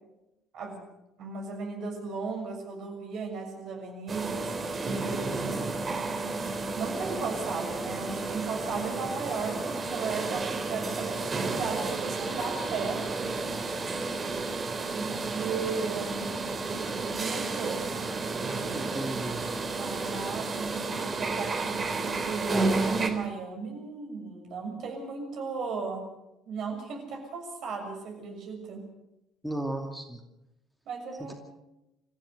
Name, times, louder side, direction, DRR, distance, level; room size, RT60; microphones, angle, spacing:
voice 1, 1.2-5.7 6.7-13.0 14.9-16.3 17.0-17.8 19.7-26.0 26.5-28.8 30.8-31.3, right 4 dB, 55° right, 2 dB, 6.6 m, -36 dB
sound 1, 4.1-23.1, right 3 dB, 30° right, 3.6 m, -32 dB
voice 2, 18.7-19.4 29.4-30.2, right 1 dB, ahead, 3 dB, 2.5 m, -34 dB
27.0 x 15.0 x 6.8 m, 0.92 s
figure-of-eight pair, 55°, 0 cm